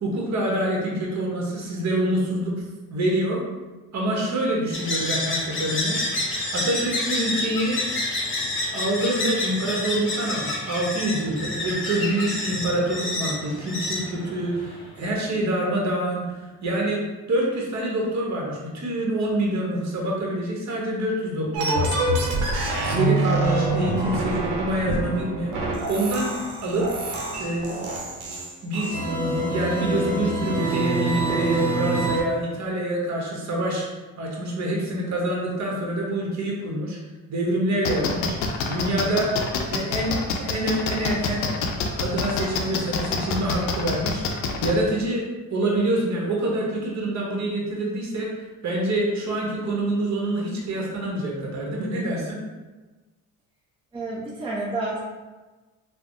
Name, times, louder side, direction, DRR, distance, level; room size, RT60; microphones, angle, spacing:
voice 1, 0.0-2.5 2.9-3.4 3.9-6.0 6.5-7.8 8.7-22.5 22.9-26.9 27.4-27.8 28.6-33.9 34.2-37.0 37.3-38.3 38.7-39.4 39.7-41.5 42.0-44.2 44.6-48.3 48.6-52.4, right 1 dB, 45° right, -2 dB, 0.9 m, -26 dB
sound 1, 4.7-14.9, left 2 dB, 30° left, 0.7 m, -29 dB
sound 2, 21.5-32.2, right 2 dB, 90° right, 0.7 m, -26 dB
sound 3, 37.8-44.7, left 5 dB, 85° left, 0.5 m, -26 dB
voice 2, 53.9-55.0, right 2 dB, 15° right, -6 dB, 0.6 m, -29 dB
3.3 x 2.1 x 2.5 m, 1.2 s
supercardioid pair, 70°, 39 cm